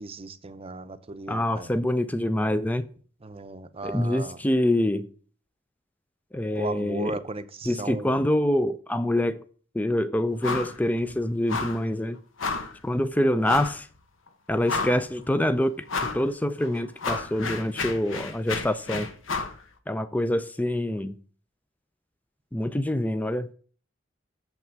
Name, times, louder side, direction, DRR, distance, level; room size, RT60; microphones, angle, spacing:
voice 1, 0.0-1.7 3.2-4.4 6.5-8.2, right 3 dB, 30° right, 0.7 m, -36 dB
voice 2, 1.3-2.9 3.8-5.1 6.3-7.1 7.7-9.4 9.7-12.2 12.8-13.9 14.5-15.8 16.1-19.1 19.9-21.2 22.5-23.5, left 1 dB, 10° left, 0.4 m, -25 dB
sound 1, 10.4-10.8 11.0-11.2 11.5-11.8 12.4-12.8 13.4-13.8 14.3-14.4 14.6-15.2 15.9-16.2 16.6-19.6, left 4 dB, 80° left, 1.1 m, -31 dB
7.1 x 5.9 x 7.5 m
head